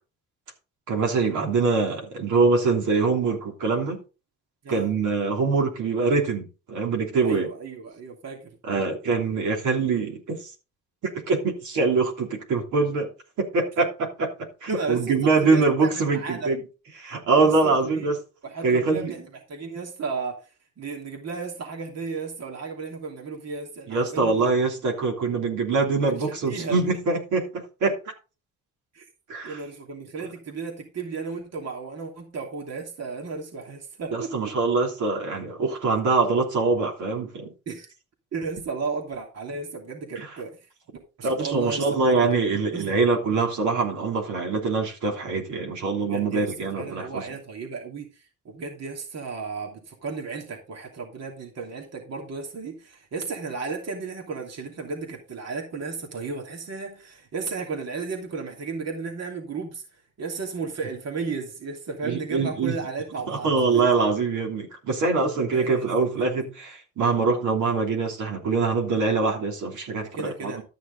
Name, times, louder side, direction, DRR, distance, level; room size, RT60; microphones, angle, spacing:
voice 1, 0.9-4.0 4.7-7.5 8.6-10.4 11.3-13.1 13.4-16.6 17.0-18.2 18.6-19.1 23.9-27.9 29.3-29.6 34.1-37.5 40.1-40.3 41.2-47.2 62.0-62.8 63.3-70.6, right 4 dB, 75° right, 3.3 m, -24 dB
voice 2, 7.2-8.5 14.7-16.5 17.3-18.1 18.4-20.5 20.8-24.5 26.1-26.8 28.9-29.1 29.4-34.5 37.7-37.9 38.3-40.5 41.2-43.0 46.1-59.8 60.2-63.8 65.5-66.1 70.1-70.6, right 4 dB, 55° right, 2.9 m, -34 dB
13.0 x 6.5 x 4.0 m
cardioid pair, 90°, 30 cm